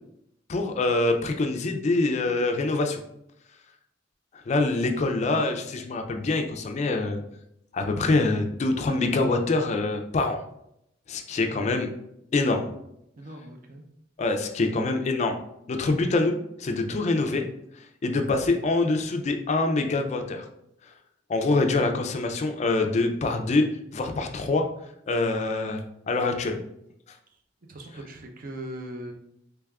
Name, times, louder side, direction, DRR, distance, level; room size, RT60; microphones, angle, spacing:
voice 1, 0.5-3.0 4.5-7.2 7.7-10.4 11.1-11.9 12.3-12.7 14.2-15.4 15.7-17.4 18.0-20.5 21.3-23.6 23.9-24.6 25.1-26.6, left 3 dB, 35° left, 5 dB, 0.4 m, -25 dB
voice 2, 11.3-11.9 13.2-13.8 21.6-21.7 27.7-29.1, right 1 dB, 50° right, 3 dB, 0.5 m, -40 dB
3.4 x 3.3 x 2.3 m, 0.78 s
head